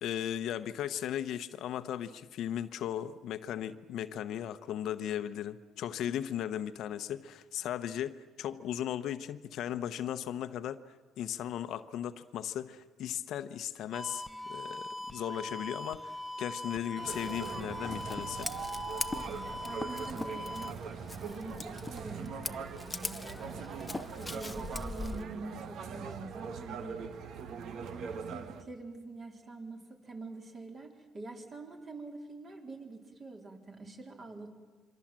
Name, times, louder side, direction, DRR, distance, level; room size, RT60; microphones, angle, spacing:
voice 1, 0.0-14.2 14.5-16.1 16.4-18.5, left 10 dB, 65° left, 0.9 m, -37 dB
sound 1, 13.9-20.7, left 1 dB, 5° right, 1.2 m, -41 dB
sound 2, 17.0-28.6, right 6 dB, 60° right, 1.5 m, -42 dB
Scissors, 17.1-25.2, left 2 dB, 15° left, 0.8 m, -42 dB
voice 2, 19.3-20.7 21.2-23.6 24.1-27.2 27.9-34.5, right 2 dB, 35° right, 3.8 m, -45 dB
26.5 x 24.5 x 7.6 m
cardioid pair, 125°, 0 cm